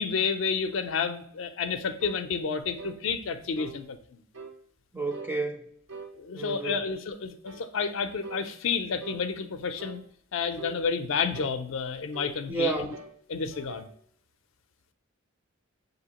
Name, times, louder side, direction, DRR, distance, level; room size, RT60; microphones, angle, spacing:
voice 1, 0.0-4.2 6.2-10.0 10.3-12.9 13.3-13.9, left 5 dB, 70° left, 9 dB, 0.4 m, -30 dB
sound 1, 2.0-2.2 2.8-3.0 3.6-3.8 4.3-4.6 5.1-5.4 5.9-6.1 6.7-6.9 7.4-7.7 8.2-8.5 9.0-9.3 9.8-10.0 10.6-10.8 11.3-11.6 12.1-12.4 12.9-13.2 13.5-13.9, right 4 dB, 75° right, 0.6 m, -43 dB
voice 2, 4.9-5.7 6.3-6.8 12.5-13.0, right 3 dB, 10° right, 3 dB, 0.4 m, -30 dB
6.1 x 2.7 x 2.9 m, 0.64 s
head